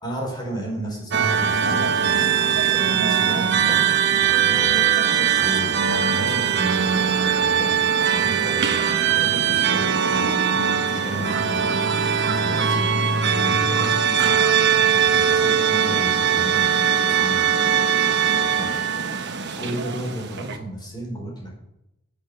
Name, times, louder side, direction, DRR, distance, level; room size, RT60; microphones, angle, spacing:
voice 1, 0.0-7.0 7.4-10.4 10.9-11.7 12.2-12.9 13.2-14.4 15.0-17.7 18.3-18.9 19.5-21.5, right 1 dB, 20° left, -2 dB, 4.7 m, -34 dB
sound 1, 1.1-20.6, right 7 dB, 55° right, 1.1 m, -20 dB
9.5 x 8.9 x 6.8 m, 0.85 s
head